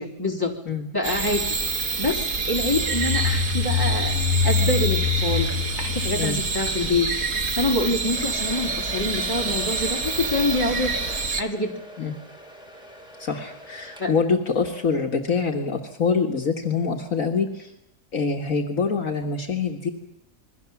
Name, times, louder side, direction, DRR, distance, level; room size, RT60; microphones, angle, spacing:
voice 1, 0.0-0.5 0.9-1.4 2.0-2.2 2.5-4.2 4.4-5.5 5.8-7.1 7.6-10.9 11.4-11.8 14.0-14.1, left 2 dB, 15° left, 1 dB, 3.7 m, -25 dB
sound 1, 1.0-11.4, right 4 dB, 60° right, 2.1 m, -27 dB
sound 2, 2.5-7.1, left 6 dB, 20° right, 5.5 m, -25 dB
Domestic sounds home sounds, 7.7-14.4, equal, 5° right, 4.2 m, -41 dB
voice 2, 13.2-17.7 18.1-19.9, left 5 dB, 60° left, 3 dB, 2.0 m, -25 dB
28.0 x 21.5 x 7.2 m, 0.79 s
omnidirectional pair, 1.6 m